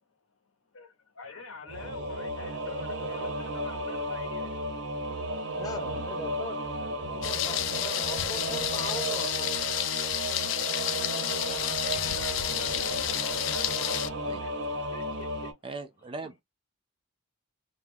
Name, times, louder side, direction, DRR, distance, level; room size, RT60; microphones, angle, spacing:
voice 1, 0.7-4.6 7.4-7.5 11.3-15.5, left 5 dB, 85° left, 0.8 m, -44 dB
Singing / Musical instrument, 1.7-15.5, right 2 dB, 60° right, 0.6 m, -34 dB
voice 2, 5.5-9.7, left 1 dB, 20° left, 0.6 m, -40 dB
Thunder, 7.2-14.1, left 12 dB, 65° left, 0.3 m, -30 dB
voice 3, 15.6-16.4, right 3 dB, 25° right, 0.3 m, -39 dB
2.3 x 2.2 x 3.3 m
head